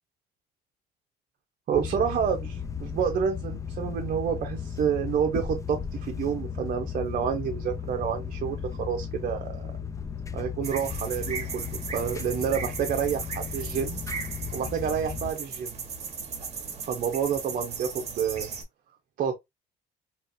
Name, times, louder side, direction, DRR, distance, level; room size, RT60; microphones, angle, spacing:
sound 1, 1.7-15.3, left 6 dB, 20° left, 0.4 m, -35 dB
voice 1, 1.7-9.7 10.3-14.0 14.5-15.8 16.8-18.5 19.2-19.4, right 7 dB, 55° right, 0.7 m, -29 dB
sound 2, 10.6-18.6, right 5 dB, 40° right, 1.2 m, -37 dB
3.2 x 2.9 x 2.6 m
cardioid pair, 110°, 17 cm